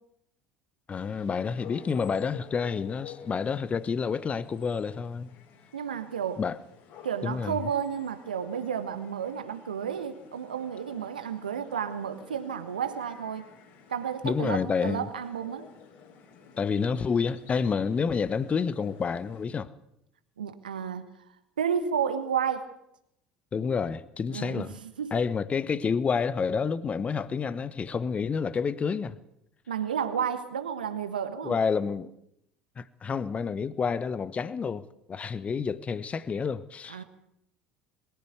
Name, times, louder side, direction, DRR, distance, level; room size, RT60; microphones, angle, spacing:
sound 1, 0.9-19.5, left 7 dB, 55° left, 4.2 m, -52 dB
voice 1, 0.9-5.3 6.4-6.6 7.2-7.6 14.2-15.1 16.6-19.7 23.5-24.7 25.1-29.2 31.4-32.1 32.8-37.0, left 5 dB, 25° left, 1.1 m, -29 dB
voice 2, 5.7-6.4 7.0-13.5 13.9-15.7 20.4-21.1 21.6-22.7 24.3-25.1 29.7-31.5 36.9-37.0, right 8 dB, 75° right, 1.3 m, -32 dB
21.5 x 15.5 x 8.1 m
figure-of-eight pair, 65°, 5 cm